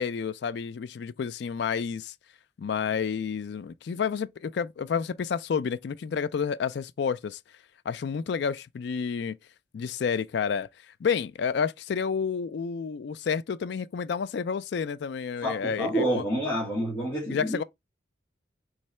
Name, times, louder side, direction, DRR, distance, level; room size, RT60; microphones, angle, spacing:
voice 1, 0.0-2.1 2.6-7.4 7.9-9.4 9.7-10.7 11.0-16.2 17.2-17.6, left 6 dB, 60° left, 0.3 m, -30 dB
voice 2, 15.4-17.6, right 1 dB, 10° left, 1.7 m, -28 dB
3.7 x 3.2 x 4.2 m
head